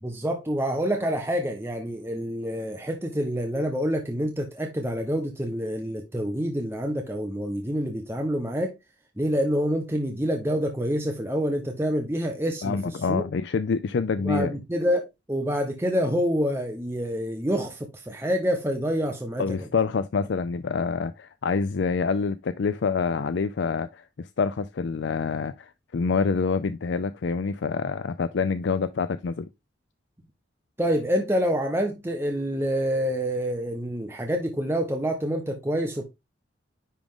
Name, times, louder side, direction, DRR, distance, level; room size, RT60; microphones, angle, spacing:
voice 1, 0.0-8.7 9.2-13.2 14.2-19.4 30.8-36.1, equal, 15° right, 0.9 m, -27 dB
voice 2, 12.6-14.6 19.4-29.5, left 5 dB, 75° left, 0.4 m, -26 dB
10.0 x 3.7 x 3.6 m
head